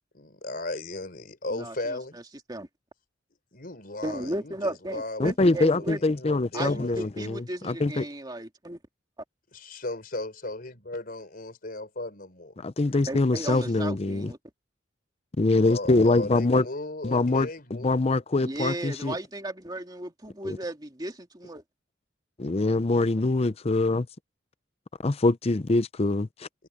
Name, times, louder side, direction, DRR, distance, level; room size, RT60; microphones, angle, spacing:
voice 1, 0.1-2.2 3.5-7.1 9.5-12.6 15.6-17.9, left 2 dB, 50° left, 4.7 m, -36 dB
voice 2, 1.5-2.2 2.5-2.7 4.0-6.0 6.5-8.8 13.1-14.4 18.4-21.6 22.7-22.8, right 1 dB, 20° right, 2.5 m, -35 dB
voice 3, 5.2-8.1 12.6-14.3 15.4-16.7 17.0-17.5 17.8-19.2 20.4-20.6 22.4-24.1 25.0-26.5, left 2 dB, 30° left, 0.6 m, -24 dB
head